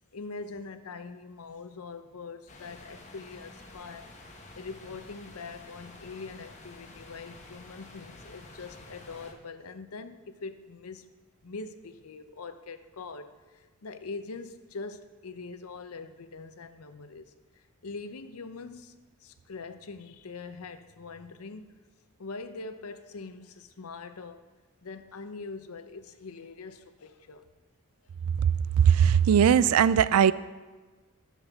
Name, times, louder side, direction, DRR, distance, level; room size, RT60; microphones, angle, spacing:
voice 1, 0.1-4.1 4.6-11.1 11.4-21.7 22.2-24.5 24.8-27.5, left 4 dB, 85° left, 10 dB, 0.7 m, -43 dB
sound 1, 2.5-9.3, left 2 dB, 35° left, 1.1 m, -49 dB
voice 2, 28.8-30.3, right 8 dB, 85° right, 17 dB, 0.3 m, -19 dB
14.0 x 7.4 x 3.5 m, 1.3 s
head